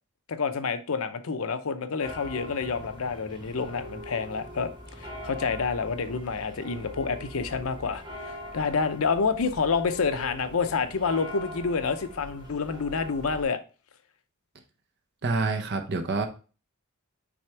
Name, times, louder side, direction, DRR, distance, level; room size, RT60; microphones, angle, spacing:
voice 1, 0.3-4.7 5.0-13.6, left 5 dB, 75° left, 0.6 m, -28 dB
sound 1, 2.0-13.4, equal, 20° right, 1.6 m, -42 dB
voice 2, 15.2-16.3, right 3 dB, 55° right, 0.8 m, -27 dB
6.2 x 3.4 x 4.6 m
head